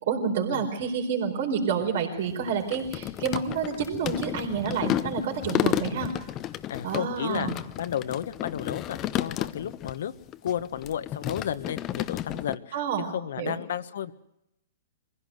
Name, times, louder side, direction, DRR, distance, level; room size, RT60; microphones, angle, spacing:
voice 1, 0.0-6.1 6.8-7.5 12.7-13.1 13.4-13.6, right 6 dB, 60° right, 2 dB, 4.3 m, -29 dB
sound 1, 2.2-10.0 10.3-12.6, left 13 dB, 30° left, 0.8 m, -32 dB
voice 2, 6.7-7.5 7.8-10.1 10.4-14.1, left 9 dB, 70° left, 13 dB, 1.3 m, -32 dB
23.5 x 16.0 x 7.9 m, 0.85 s
hypercardioid pair, 135°, 0 cm